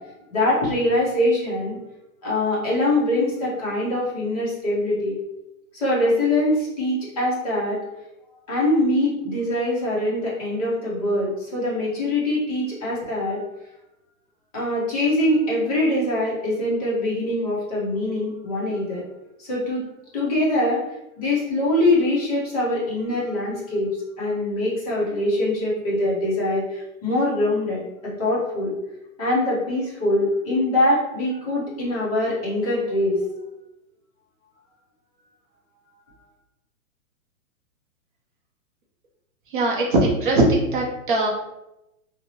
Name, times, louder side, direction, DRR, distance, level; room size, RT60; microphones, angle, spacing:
voice 1, 0.0-1.8 2.2-5.1 5.7-7.8 8.5-13.4 14.5-19.0 19.4-19.8 20.1-20.8 21.2-23.9 24.2-28.7 29.2-33.2, left 1 dB, 25° left, -6 dB, 0.7 m, -23 dB
voice 2, 39.5-41.3, right 2 dB, 35° right, -1 dB, 0.5 m, -20 dB
2.6 x 2.0 x 2.9 m, 0.90 s
hypercardioid pair, 170°, 43 cm